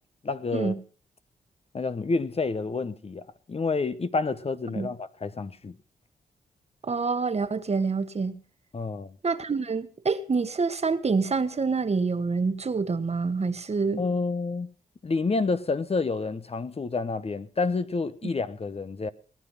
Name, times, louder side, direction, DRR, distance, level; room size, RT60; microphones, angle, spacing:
voice 1, 0.2-0.7 1.7-3.2 3.5-5.8 8.7-9.1 14.0-14.7 15.0-19.1, left 4 dB, 40° left, 1.0 m, -29 dB
voice 2, 6.8-8.3 9.2-14.0, right 4 dB, 40° right, 1.5 m, -27 dB
18.5 x 9.8 x 5.8 m
cardioid pair, 55°, 16 cm